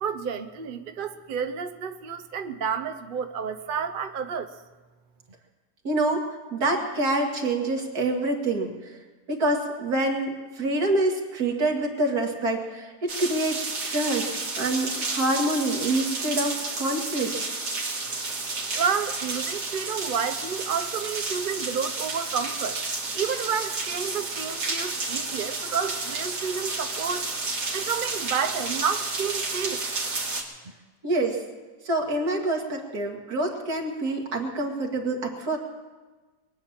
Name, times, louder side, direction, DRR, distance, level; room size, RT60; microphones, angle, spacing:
voice 1, 0.0-4.5 18.7-22.8 23.1-27.3 27.7-29.8, right 7 dB, 50° right, 9 dB, 0.7 m, -30 dB
voice 2, 5.8-9.0 9.3-17.3 31.0-31.4 31.9-35.6, right 2 dB, 70° right, 1 dB, 2.5 m, -26 dB
sound 1, 13.1-30.4, right 3 dB, 90° right, 2.6 m, -31 dB
22.0 x 8.8 x 7.3 m, 1.3 s
omnidirectional pair, 1.7 m